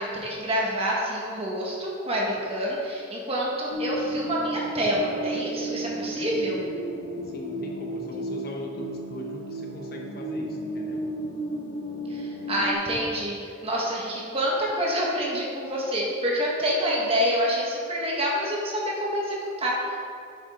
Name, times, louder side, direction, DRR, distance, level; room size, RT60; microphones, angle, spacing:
voice 1, 0.0-6.6 12.1-20.0, equal, 30° right, -4 dB, 1.7 m, -27 dB
sound 1, 3.7-12.7, right 1 dB, 65° left, 1.4 m, -33 dB
voice 2, 7.2-11.0, equal, 50° left, 0 dB, 1.0 m, -40 dB
9.4 x 7.7 x 3.8 m, 2.4 s
head